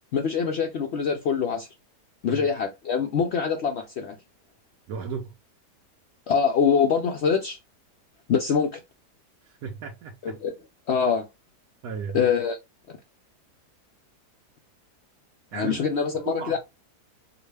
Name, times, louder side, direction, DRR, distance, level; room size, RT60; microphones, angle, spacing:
voice 1, 0.1-1.7 2.2-4.2 6.3-7.6 8.3-8.8 10.2-10.5 10.9-11.2 12.1-12.6 15.5-16.6, left 6 dB, 75° left, 0.6 m, -24 dB
voice 2, 4.9-5.3 9.4-10.3 11.8-12.2 15.5-15.8 16.2-16.6, right 6 dB, 70° right, 1.1 m, -35 dB
4.7 x 2.3 x 3.2 m
omnidirectional pair, 1.7 m